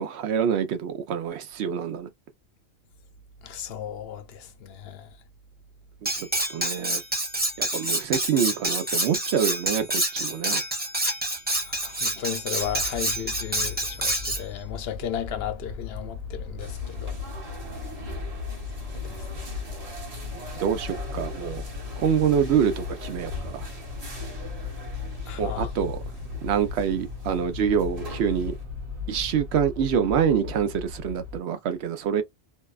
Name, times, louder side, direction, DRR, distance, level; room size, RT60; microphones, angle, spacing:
voice 1, 0.0-2.1 6.0-7.0 7.6-10.6 20.3-21.6 22.0-23.7 25.4-26.0 26.4-28.6 29.1-32.2, right 8 dB, 85° right, 0.9 m, -26 dB
voice 2, 3.4-5.1 11.7-17.2 19.0-19.5 25.2-25.7, left 9 dB, 75° left, 0.8 m, -35 dB
Cutlery silverware, 6.1-14.4, right 1 dB, 10° right, 0.7 m, -27 dB
sound 1, 12.6-31.4, left 5 dB, 55° right, 1.1 m, -37 dB
sound 2, 16.6-28.6, right 1 dB, 40° right, 0.9 m, -42 dB
2.6 x 2.1 x 2.3 m
omnidirectional pair, 1.1 m